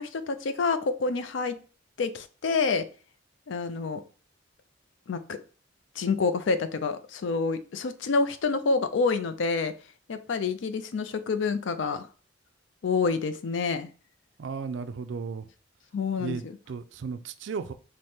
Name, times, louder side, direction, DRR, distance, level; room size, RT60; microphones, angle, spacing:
voice 1, 0.0-1.6 2.0-2.8 3.5-4.0 5.1-5.4 6.0-9.7 10.1-12.1 12.8-13.9 15.9-16.5, left 4 dB, 65° left, 12 dB, 0.4 m, -28 dB
voice 2, 14.4-15.5 16.2-17.7, right 5 dB, 65° right, 11 dB, 0.4 m, -35 dB
4.8 x 2.1 x 4.3 m, 0.39 s
head